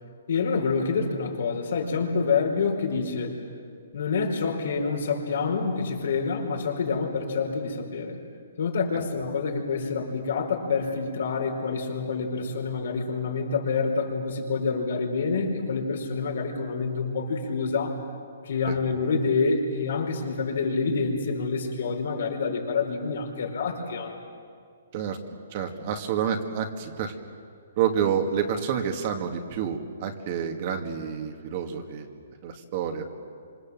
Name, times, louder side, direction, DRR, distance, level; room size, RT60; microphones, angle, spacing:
voice 1, 0.3-3.4 3.9-8.2 8.6-18.0 18.4-24.2, left 4 dB, 65° left, 2 dB, 5.0 m, -27 dB
voice 2, 25.5-27.1 27.8-32.1 32.4-33.0, right 8 dB, 35° right, 4 dB, 2.1 m, -28 dB
26.5 x 26.5 x 7.7 m, 2.2 s
hypercardioid pair, 165°, 0 cm